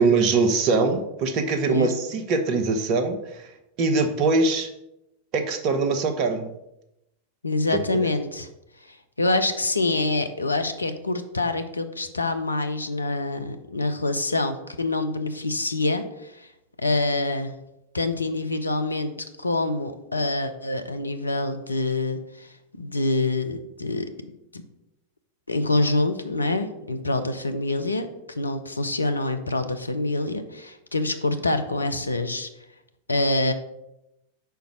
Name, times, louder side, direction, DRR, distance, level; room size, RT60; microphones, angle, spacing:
voice 1, 0.0-3.5 3.8-4.7 5.3-6.5 7.7-8.1, right 3 dB, 40° right, 6 dB, 0.9 m, -22 dB
voice 2, 7.4-8.5 8.8-16.5 16.8-17.5 17.9-19.1 19.4-24.1 24.5-24.6 25.5-32.5 33.1-33.5, left 2 dB, 80° left, 8 dB, 0.6 m, -26 dB
5.1 x 4.6 x 6.0 m, 0.87 s
figure-of-eight pair, 90°, 0 cm